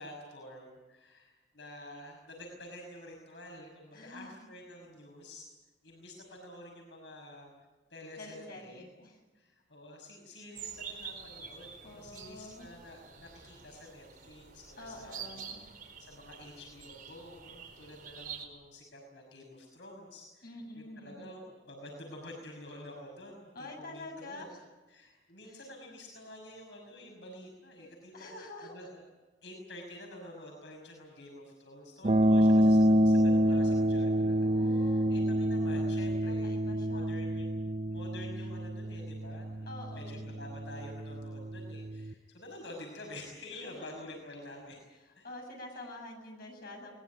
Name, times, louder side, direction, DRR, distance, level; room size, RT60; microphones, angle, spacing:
voice 1, 0.0-5.5 5.8-7.5 7.9-8.8 9.3-15.4 16.0-24.5 24.9-29.0 29.4-37.5 37.9-39.7 39.9-44.8 45.1-45.3 45.7-45.9, left 1 dB, 75° left, 0 dB, 6.0 m, -49 dB
voice 2, 3.9-4.4 8.2-9.2 11.8-12.7 14.8-15.6 20.4-21.2 23.5-24.6 25.4-25.7 28.1-28.9 34.4-35.3 36.2-37.1 39.7-40.2 43.6-44.1 45.1-46.9, left 1 dB, 55° left, 1 dB, 7.8 m, -47 dB
sound 1, 10.6-18.5, right 7 dB, 55° right, 4.7 m, -47 dB
sound 2, 32.0-42.1, equal, 35° right, 0.8 m, -28 dB
22.0 x 21.0 x 9.3 m, 1.2 s
head